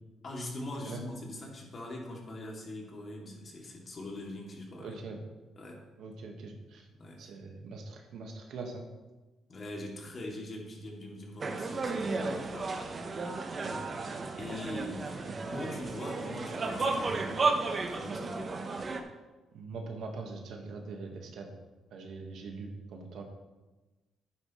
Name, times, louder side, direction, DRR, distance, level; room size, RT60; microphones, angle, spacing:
voice 1, 0.2-5.0 5.6-5.8 6.9-7.3 9.5-13.0 14.4-18.6, left 1 dB, 45° left, -1 dB, 2.7 m, -42 dB
voice 2, 4.8-5.2 6.0-6.9 7.2-8.9 13.6-14.1 15.2-15.3 19.5-21.5 21.9-23.2, right 4 dB, 75° right, 2 dB, 1.6 m, -42 dB
sound 1, 11.4-19.0, right 3 dB, 40° right, 1.0 m, -33 dB
11.5 x 9.0 x 3.2 m, 1.2 s
cardioid pair, 90°, 0 cm